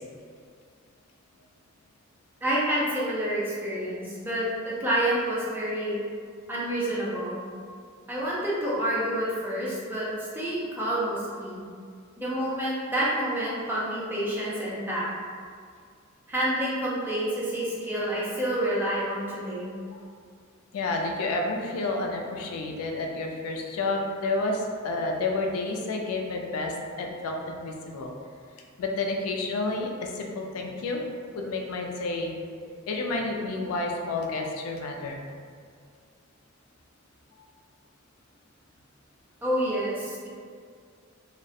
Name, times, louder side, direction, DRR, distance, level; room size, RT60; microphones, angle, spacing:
voice 1, 2.4-6.0 6.5-7.4 8.1-10.1 10.3-11.6 12.2-15.1 16.3-19.7 31.3-31.4 39.4-40.3, right 1 dB, 10° right, -8 dB, 0.4 m, -28 dB
voice 2, 20.7-28.1 28.8-31.0 31.3-32.4 32.9-35.2, left 2 dB, 85° left, 1 dB, 0.3 m, -30 dB
2.3 x 2.0 x 2.6 m, 2.1 s
head